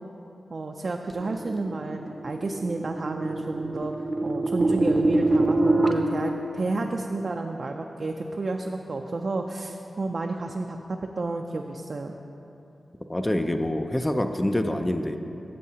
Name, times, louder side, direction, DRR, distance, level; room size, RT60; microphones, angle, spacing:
voice 1, 0.5-3.9 4.2-10.8 11.2-12.1, right 3 dB, 55° right, 2 dB, 0.4 m, -31 dB
sound 1, 1.2-5.9, right 2 dB, 25° right, 0.6 m, -24 dB
voice 2, 13.1-15.2, left 1 dB, 20° left, 6 dB, 0.4 m, -26 dB
13.5 x 7.4 x 2.8 m, 2.9 s
wide cardioid pair, 75°, 0 cm